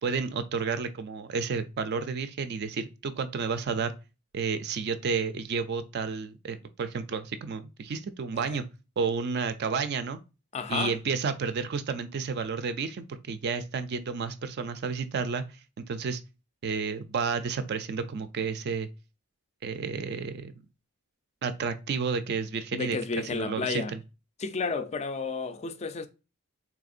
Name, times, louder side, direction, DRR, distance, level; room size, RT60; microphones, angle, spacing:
voice 1, 0.0-3.9 4.3-8.7 9.0-10.2 10.7-15.4 15.8-16.2 16.6-18.9 19.6-20.5 21.4-24.0, right 5 dB, 45° right, 0.4 m, -31 dB
voice 2, 10.5-11.0 22.7-23.9 24.4-26.1, left 4 dB, 30° left, 0.3 m, -31 dB
3.5 x 3.3 x 2.4 m
head